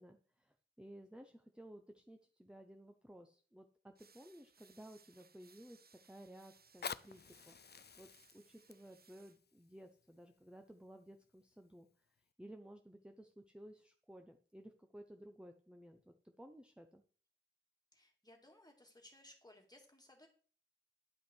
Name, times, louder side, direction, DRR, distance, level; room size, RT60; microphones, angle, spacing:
voice 1, 0.0-7.6 8.0-11.9 12.4-17.0, right 1 dB, 5° right, 5 dB, 0.8 m, -56 dB
sound 1, 3.9-9.4, right 5 dB, 50° right, 0.4 m, -68 dB
Fire, 6.6-11.5 12.2-12.3, left 6 dB, 55° left, 0.4 m, -51 dB
voice 2, 17.9-20.3, left 1 dB, 20° left, 1 dB, 2.4 m, -61 dB
10.5 x 5.6 x 4.6 m, 0.42 s
wide cardioid pair, 65°, 20 cm